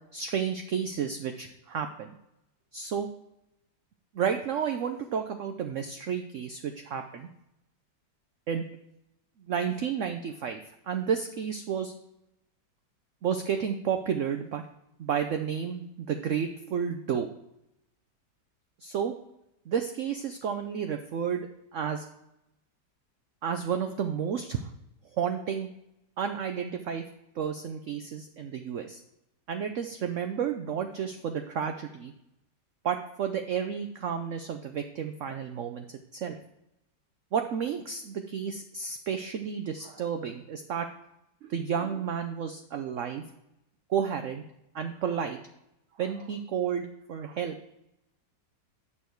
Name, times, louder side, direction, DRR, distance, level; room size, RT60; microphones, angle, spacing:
voice 1, 0.1-2.1 2.7-3.1 4.1-7.3 8.5-8.6 9.5-10.6 10.9-11.9 13.2-14.6 15.0-17.3 18.8-19.2 19.7-22.1 23.4-24.7 25.2-25.7 26.2-27.0 27.4-29.0 29.5-32.1 32.8-35.9 36.1-36.4 37.3-40.9 41.4-43.2 43.9-44.4 44.7-45.4 46.0-47.5, right 7 dB, 60° right, 6 dB, 0.8 m, -31 dB
10.5 x 6.7 x 4.5 m, 0.85 s
omnidirectional pair, 1.8 m